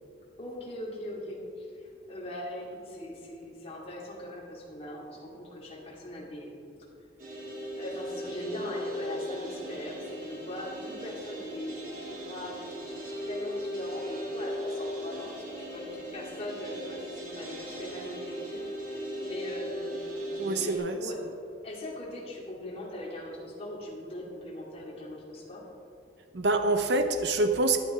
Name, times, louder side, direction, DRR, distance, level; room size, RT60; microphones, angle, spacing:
voice 1, 0.4-6.6 7.8-21.2 21.6-25.6, left 1 dB, 35° left, -5 dB, 2.6 m, -40 dB
sound 1, 7.2-20.8, equal, 45° right, 2.9 m, -38 dB
voice 2, 20.4-21.0 26.3-27.8, right 2 dB, 65° right, 7 dB, 0.7 m, -26 dB
14.0 x 9.7 x 4.3 m, 2.5 s
head